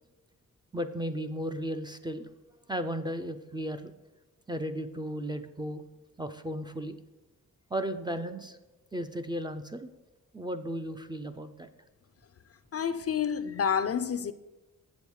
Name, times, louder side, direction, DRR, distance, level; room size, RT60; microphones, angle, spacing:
voice 1, 0.7-2.3 2.7-3.9 4.5-5.8 6.2-7.0 7.7-8.6 8.9-9.9 10.3-11.7, equal, 15° right, 0.4 m, -35 dB
voice 2, 12.7-14.3, left 7 dB, 45° left, 0.4 m, -29 dB
7.3 x 7.1 x 4.7 m
wide cardioid pair, 120°, 33 cm